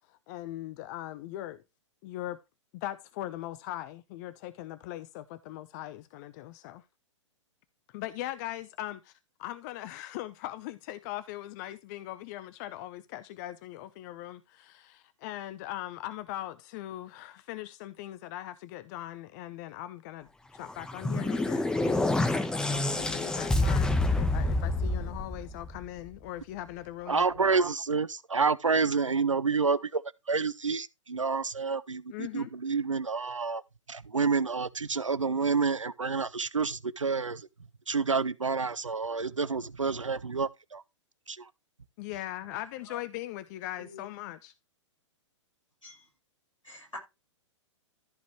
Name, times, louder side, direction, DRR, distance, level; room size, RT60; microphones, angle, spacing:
voice 1, 0.1-1.6 2.0-2.4 2.7-6.8 7.9-9.1 9.4-22.1 22.4-27.4 32.1-32.5 42.0-44.5, left 14 dB, 35° left, 0.8 m, -40 dB
sound 1, 20.6-26.0, left 2 dB, 5° left, 1.2 m, -28 dB
voice 2, 27.1-30.0 30.3-33.6 33.9-37.5 37.9-40.8 41.3-41.4, right 4 dB, 80° right, 0.8 m, -29 dB
voice 3, 46.6-47.0, left 2 dB, 85° left, 6.3 m, -45 dB
14.5 x 5.1 x 3.1 m
figure-of-eight pair, 110°, 16 cm